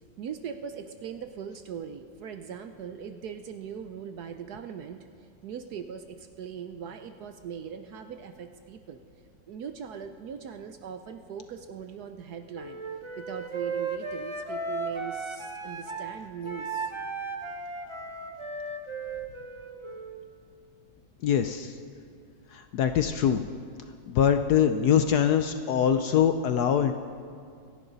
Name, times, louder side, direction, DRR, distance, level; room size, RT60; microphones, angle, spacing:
voice 1, 0.0-5.1 5.4-9.0 9.5-12.8 13.2-16.9, right 7 dB, 65° right, 7 dB, 1.0 m, -40 dB
Wind instrument woodwind instrument, 12.5-16.1 16.4-20.2, right 4 dB, 25° right, 0.6 m, -35 dB
voice 2, 21.2-21.7 22.5-23.4 24.1-26.9, left 8 dB, 70° left, 8 dB, 1.0 m, -23 dB
26.5 x 11.0 x 4.0 m, 2.2 s
omnidirectional pair, 2.1 m